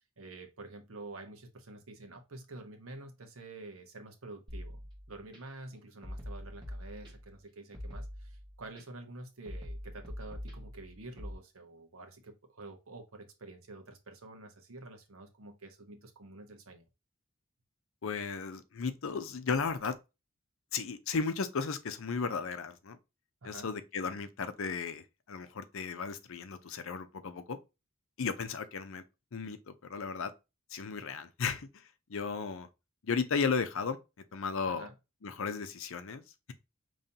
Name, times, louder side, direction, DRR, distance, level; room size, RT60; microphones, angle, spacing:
voice 1, 0.2-4.8 5.1-16.8 23.4-23.7 34.6-34.9, right 2 dB, 75° right, 1.1 m, -48 dB
sound 1, 4.5-5.4 6.0-7.4 7.7-8.8 9.5-11.3, equal, 20° right, 1.7 m, -43 dB
voice 2, 18.0-20.0 20.7-23.0 23.4-27.6 28.2-29.0 29.3-30.3 30.7-32.7 33.0-34.0 34.3-34.9 35.2-36.5, left 5 dB, 65° left, 0.6 m, -35 dB
5.3 x 3.1 x 2.8 m
head